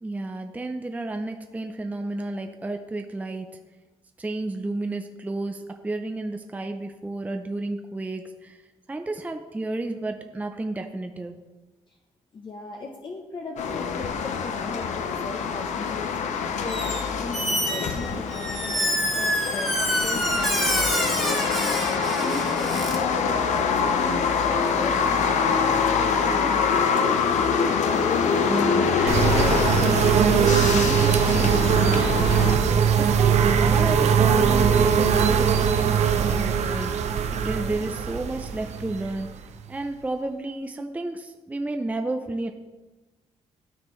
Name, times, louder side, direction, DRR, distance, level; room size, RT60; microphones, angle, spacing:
voice 1, 0.0-3.5 4.2-8.6 8.9-11.3 28.5-32.5 33.0-39.3 39.7-42.5, right 2 dB, 15° right, 5 dB, 0.4 m, -32 dB
voice 2, 12.3-16.1 16.6-26.8, left 3 dB, 40° left, 1 dB, 0.7 m, -37 dB
sound 1, 13.6-32.6, left 6 dB, 80° left, 0.6 m, -25 dB
Squeak, 16.7-17.0 17.3-23.0, equal, 5° left, 1.5 m, -27 dB
sound 2, 29.1-39.7, right 7 dB, 70° right, 0.6 m, -21 dB
12.5 x 4.4 x 3.1 m, 1.2 s
cardioid pair, 100°, 12 cm